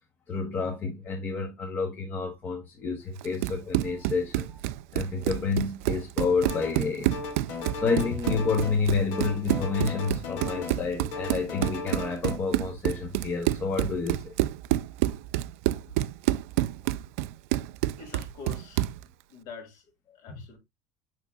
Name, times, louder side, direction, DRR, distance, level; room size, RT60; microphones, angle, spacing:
voice 1, 0.3-4.6 4.9-7.1 7.7-14.3 20.3-20.4, left 4 dB, 25° left, 1.0 m, -29 dB
Run, 3.2-19.0, right 16 dB, 80° right, 0.3 m, -29 dB
sound 1, 6.5-6.9 7.1-8.8 9.1-10.8 11.1-12.4, left 4 dB, 80° left, 2.0 m, -36 dB
voice 2, 18.0-18.9 19.3-19.9 20.1-20.6, left 4 dB, 55° left, 2.2 m, -44 dB
6.5 x 6.2 x 2.3 m
cardioid pair, 160°, 8 cm